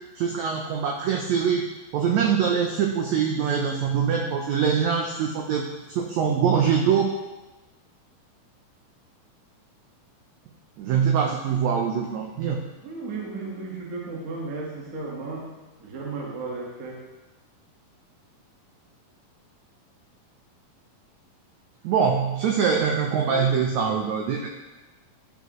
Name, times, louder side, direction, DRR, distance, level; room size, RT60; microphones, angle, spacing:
voice 1, 0.1-1.6 1.9-7.1 10.8-12.6 21.8-24.5, right 7 dB, 85° right, 1 dB, 1.6 m, -23 dB
voice 2, 12.8-17.0 23.3-23.5, right 3 dB, 55° right, -3 dB, 0.9 m, -35 dB
12.5 x 5.0 x 3.0 m, 1.1 s
omnidirectional pair, 4.0 m